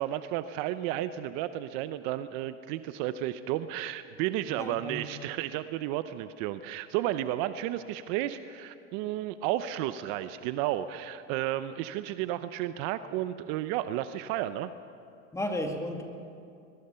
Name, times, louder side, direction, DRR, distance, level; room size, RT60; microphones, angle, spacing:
voice 1, 0.0-14.7, right 13 dB, 50° right, 12 dB, 0.8 m, -32 dB
voice 2, 4.5-5.0 15.3-16.0, left 1 dB, 10° left, 3 dB, 2.1 m, -33 dB
22.0 x 21.5 x 5.7 m, 2.5 s
supercardioid pair, 120°, 37 cm